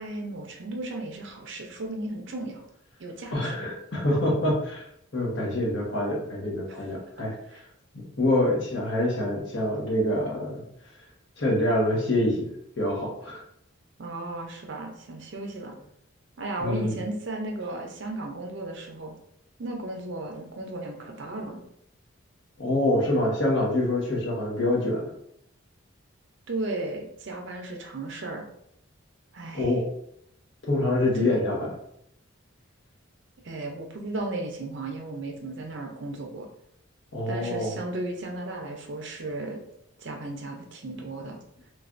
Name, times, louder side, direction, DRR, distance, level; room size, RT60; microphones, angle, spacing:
voice 1, 0.0-2.6 3.0-3.5 7.2-7.6 14.0-15.7 16.4-19.1 19.6-21.6 26.5-28.5 29.3-29.7 31.1-31.4 33.4-36.5 37.3-39.6 40.0-41.4, right 2 dB, 60° right, 2 dB, 0.5 m, -35 dB
voice 2, 3.3-4.8 5.1-7.3 8.2-10.6 11.4-12.5 12.8-13.4 16.6-17.0 22.6-25.1 29.5-29.9 30.7-31.8 37.1-37.7, left 1 dB, 60° left, -3 dB, 0.9 m, -25 dB
3.2 x 2.3 x 2.5 m, 0.73 s
head